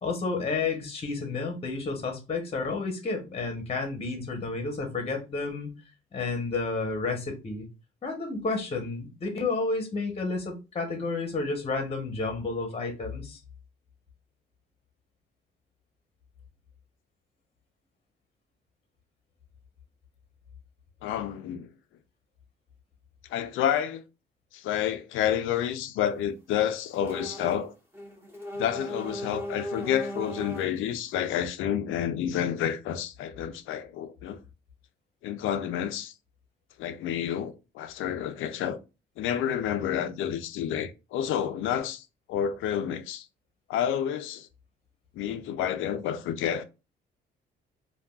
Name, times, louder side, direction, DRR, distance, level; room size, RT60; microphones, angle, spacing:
voice 1, 0.0-5.7 6.1-7.7 8.0-13.4, left 3 dB, 30° left, 0.9 m, -31 dB
voice 2, 21.0-21.7 23.3-24.0 24.5-27.7 28.5-34.4 35.2-36.1 36.8-38.8 39.2-43.3 43.7-44.5 45.2-46.6, left 9 dB, 85° left, 0.4 m, -29 dB
sound 1, 26.9-27.7 27.9-30.8, equal, 10° right, 1.3 m, -37 dB
3.4 x 2.3 x 2.3 m
cardioid pair, 90°, 20 cm